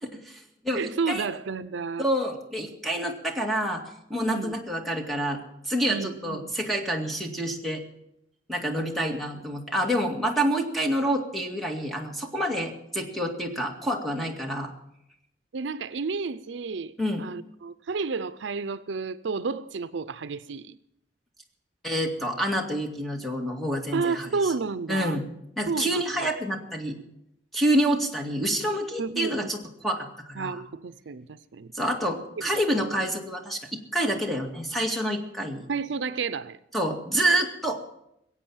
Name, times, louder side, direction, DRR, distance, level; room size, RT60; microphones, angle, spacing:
voice 1, 0.0-1.3 2.0-3.8 4.1-7.8 8.5-14.7 17.0-17.2 21.8-24.5 24.9-25.2 25.6-27.0 27.5-29.6 29.8-30.6 31.7-35.7 36.7-38.0, right 1 dB, ahead, 2.1 m, -28 dB
voice 2, 0.7-2.1 4.3-4.6 5.9-6.5 15.5-16.9 17.2-20.8 23.9-25.2 25.7-26.3 29.0-29.5 30.4-31.7 32.7-32.9 35.7-36.6, right 4 dB, 75° right, 0.5 m, -31 dB
21.0 x 8.6 x 7.3 m
head